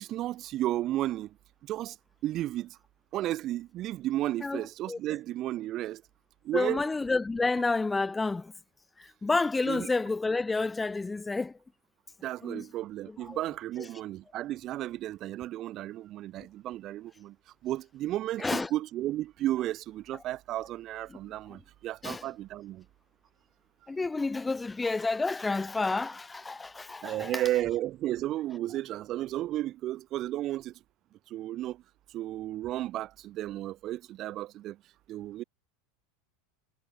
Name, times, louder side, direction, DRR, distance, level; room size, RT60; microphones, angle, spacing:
voice 1, 0.0-1.3 1.6-2.0 2.2-2.8 3.1-6.0 6.4-6.8 9.7-9.9 12.2-17.3 17.6-22.8 27.0-30.7 31.3-31.8 32.1-34.8 35.1-35.4, right 14 dB, 40° right, 1.5 m, -33 dB
voice 2, 6.5-8.5 9.0-11.5 12.4-12.6 13.3-13.4 18.4-18.7 22.0-22.3 23.9-27.4, left 3 dB, 10° left, 0.5 m, -30 dB
figure-of-eight pair, 80°, 0 cm